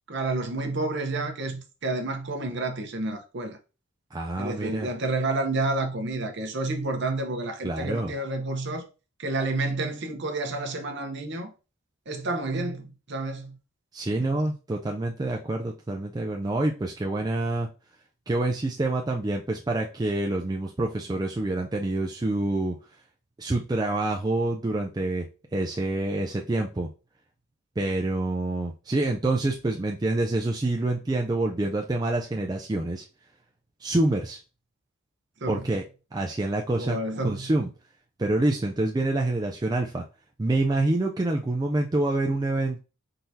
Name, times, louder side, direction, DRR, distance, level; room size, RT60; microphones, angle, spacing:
voice 1, 0.1-3.6 4.4-8.9 9.2-11.5 12.1-13.6 14.2-14.4 35.4-35.6 36.8-37.5, right 2 dB, 55° right, 0.8 m, -30 dB
voice 2, 4.1-4.9 7.6-8.1 13.9-17.7 18.3-22.8 23.4-25.2 25.5-26.9 27.8-33.0 33.8-34.4 35.5-35.8 36.1-37.7 38.2-40.0 40.4-42.8, right 2 dB, 20° right, 0.3 m, -27 dB
4.4 x 3.8 x 2.7 m
head